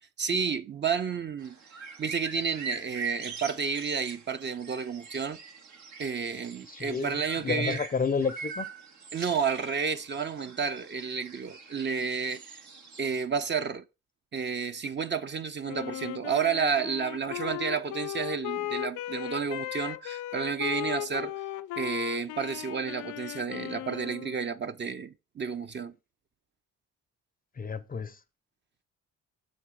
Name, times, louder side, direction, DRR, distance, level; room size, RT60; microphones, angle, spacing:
voice 1, 0.2-5.4 6.0-7.8 9.1-12.6 13.0-13.8 14.3-21.3 21.8-25.9, right 6 dB, 35° right, 0.7 m, -31 dB
sound 1, 1.4-13.2, right 5 dB, 70° right, 1.5 m, -43 dB
voice 2, 6.7-8.7 27.6-28.2, left 5 dB, 30° left, 0.6 m, -31 dB
Wind instrument woodwind instrument, 15.7-24.5, left 14 dB, 75° left, 0.5 m, -37 dB
6.8 x 4.1 x 6.2 m
cardioid pair, 90°, 30 cm